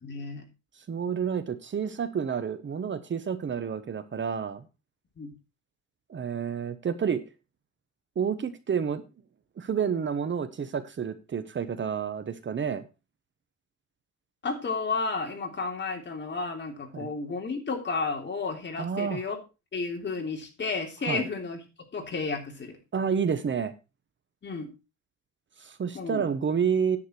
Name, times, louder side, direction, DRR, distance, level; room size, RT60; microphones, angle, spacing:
voice 1, 0.0-0.5 5.2-5.3 14.4-19.4 19.7-21.6 21.9-22.8 24.4-24.7 25.9-26.3, left 4 dB, 40° left, 3.3 m, -32 dB
voice 2, 0.9-4.6 6.1-7.2 8.2-9.0 9.6-12.8 16.9-17.1 18.8-19.2 21.1-21.3 22.9-23.7 25.6-27.0, right 7 dB, 40° right, 1.1 m, -29 dB
9.8 x 8.9 x 4.4 m
cardioid pair, 120°, 29 cm